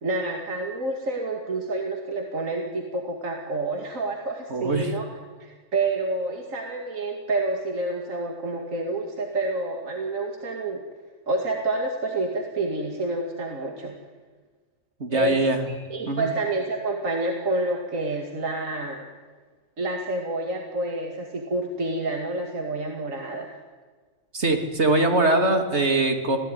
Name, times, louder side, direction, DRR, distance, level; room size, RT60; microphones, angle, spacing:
voice 1, 0.0-5.1 5.4-10.8 11.3-14.0 15.1-15.4 15.9-19.1 19.8-23.5, right 2 dB, 80° right, 2 dB, 2.7 m, -28 dB
voice 2, 4.5-4.9 15.0-15.6 16.1-16.3 24.3-26.4, right 2 dB, 55° right, 4 dB, 3.3 m, -22 dB
27.0 x 18.0 x 9.8 m, 1.5 s
omnidirectional pair, 1.4 m